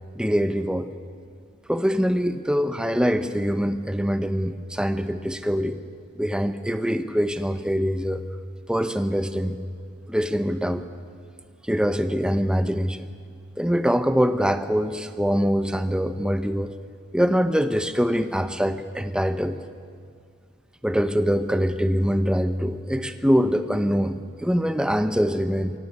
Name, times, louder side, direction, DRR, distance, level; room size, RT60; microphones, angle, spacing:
voice 1, 0.1-0.9 1.7-5.8 6.2-8.2 8.7-9.6 10.1-10.9 11.7-13.1 13.6-16.7 17.1-19.6 20.8-25.7, equal, 5° right, 9 dB, 0.8 m, -23 dB
22.5 x 17.0 x 9.3 m, 2.1 s
head